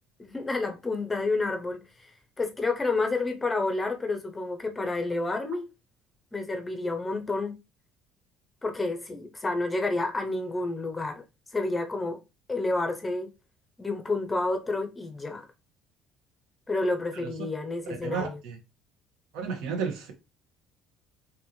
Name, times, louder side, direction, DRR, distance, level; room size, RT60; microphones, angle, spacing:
voice 1, 0.2-2.1 2.4-5.6 6.3-7.5 8.6-11.2 11.5-12.2 12.5-13.3 13.8-15.4 16.7-18.4, left 2 dB, 10° left, 0.6 m, -29 dB
voice 2, 17.9-18.6 19.3-20.1, right 5 dB, 80° right, 1.5 m, -33 dB
5.4 x 2.9 x 3.1 m
cardioid pair, 170°, 0 cm